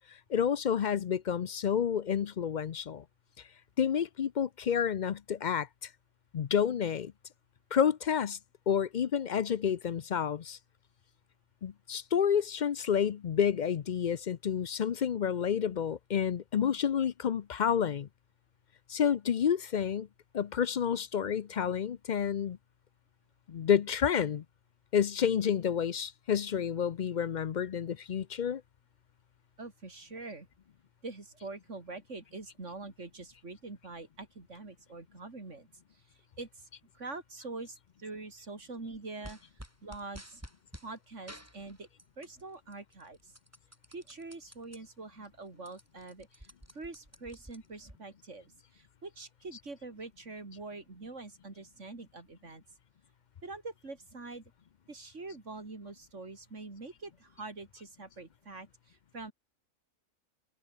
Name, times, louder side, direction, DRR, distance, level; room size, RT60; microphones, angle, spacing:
voice 1, 0.3-3.0 3.8-5.9 6.3-7.1 7.7-8.4 8.7-10.6 11.6-18.1 18.9-20.1 20.3-22.6 23.5-24.4 24.9-28.6 49.5-49.6, left 8 dB, 55° left, 0.5 m, -29 dB
voice 2, 29.6-30.5 31.0-36.7 36.9-39.4 39.8-40.4 40.8-41.9 42.2-43.4 43.9-52.6 53.4-54.4 54.9-59.3, right 3 dB, 60° right, 3.8 m, -45 dB
sound 1, 39.2-40.9 41.3-42.4 42.7-44.8 45.2-45.3 45.5-48.0, equal, 10° right, 7.9 m, -51 dB
omnidirectional pair, 1.4 m